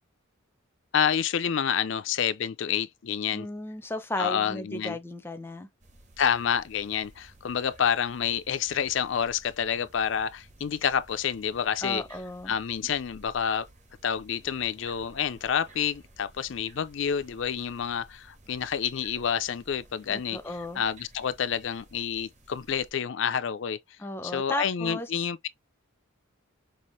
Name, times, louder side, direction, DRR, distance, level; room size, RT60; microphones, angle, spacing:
voice 1, 0.9-3.5 4.2-5.0 6.2-12.0 12.5-13.7 14.0-23.8 24.2-25.5, left 8 dB, 65° left, 0.4 m, -28 dB
voice 2, 3.3-5.7 11.8-12.5 20.1-20.8 24.0-25.3, left 1 dB, 10° left, 0.5 m, -35 dB
sound 1, 5.8-22.9, right 2 dB, 35° right, 0.9 m, -55 dB
5.5 x 2.5 x 3.1 m
head